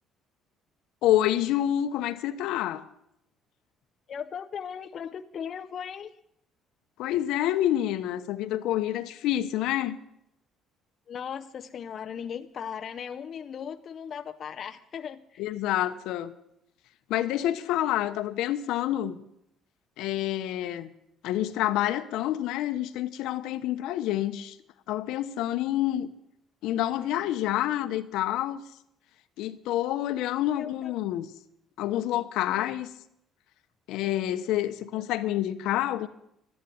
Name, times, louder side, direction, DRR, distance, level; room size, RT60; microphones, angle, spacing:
voice 1, 1.0-2.9 7.0-10.0 15.4-16.3 17.1-19.2 20.0-20.9 21.2-24.6 24.9-26.1 26.6-28.6 29.4-31.3 31.8-32.9 33.9-36.1, left 13 dB, 75° left, 1.0 m, -28 dB
voice 2, 4.1-6.1 11.1-15.5 30.5-30.9 32.4-32.7, left 7 dB, 35° left, 0.6 m, -38 dB
13.0 x 10.5 x 8.6 m
cardioid pair, 160°, 0 cm